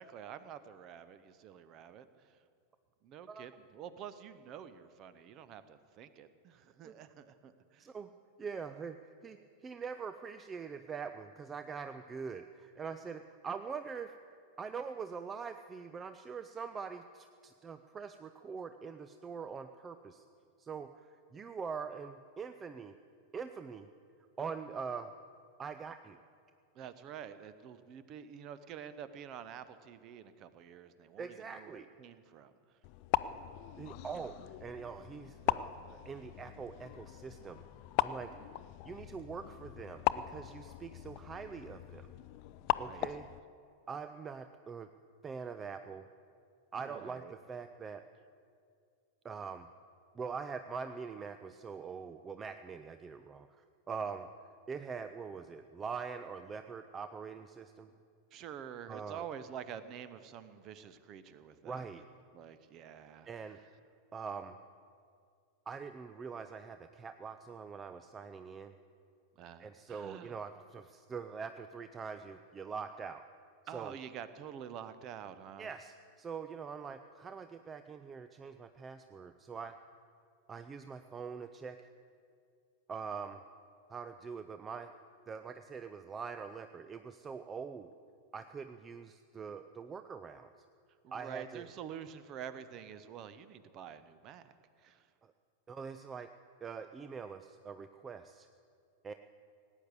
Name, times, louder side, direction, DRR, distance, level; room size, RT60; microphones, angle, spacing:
voice 1, 0.0-2.4 3.0-7.9 26.7-32.5 38.2-38.5 42.6-43.0 46.8-47.3 58.3-62.0 62.3-63.3 69.3-70.4 73.7-75.7 91.0-94.5 94.8-95.1, right 8 dB, 35° right, 13 dB, 0.9 m, -48 dB
voice 2, 7.8-8.1 8.4-14.2 14.6-20.2 20.6-22.9 23.3-23.9 24.4-25.1 25.6-26.2 31.2-31.9 33.8-37.6 38.0-38.3 38.8-42.1 42.8-43.3 43.9-44.9 45.2-46.1 46.7-48.0 49.2-49.7 50.1-54.3 54.7-57.9 58.9-59.3 61.6-62.0 63.3-63.6 64.1-64.6 65.7-68.7 69.6-73.2 73.7-74.0 75.6-79.8 80.5-81.9 82.9-83.4 83.9-84.9 85.3-87.9 88.3-90.5 91.1-91.7 95.2-95.3 95.7-96.3 96.6-98.5 99.0-99.1, right 5 dB, 20° right, 9 dB, 0.5 m, -43 dB
sound 1, 32.8-43.4, left 15 dB, 45° left, 0.4 m, -38 dB
18.0 x 9.2 x 8.3 m, 2.3 s
figure-of-eight pair, 90°, 0 cm